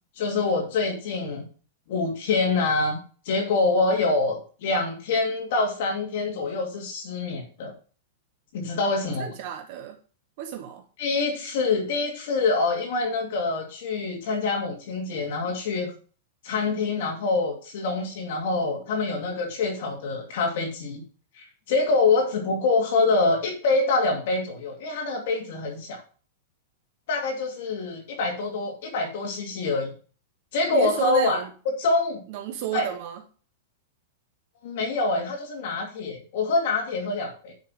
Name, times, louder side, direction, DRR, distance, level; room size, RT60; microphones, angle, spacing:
voice 1, 0.1-1.5 1.9-3.0 3.2-7.7 8.5-9.3 11.0-15.9 16.4-21.0 21.3-26.0 27.1-29.9 30.5-31.4 31.8-32.2 32.7-32.9 34.6-37.5, left 3 dB, 50° left, 2.6 m, -25 dB
voice 2, 9.2-10.0 10.4-10.8 30.7-31.5 32.3-33.2, right 10 dB, 40° right, 1.1 m, -32 dB
10.0 x 5.8 x 4.8 m
supercardioid pair, 170°, 0 cm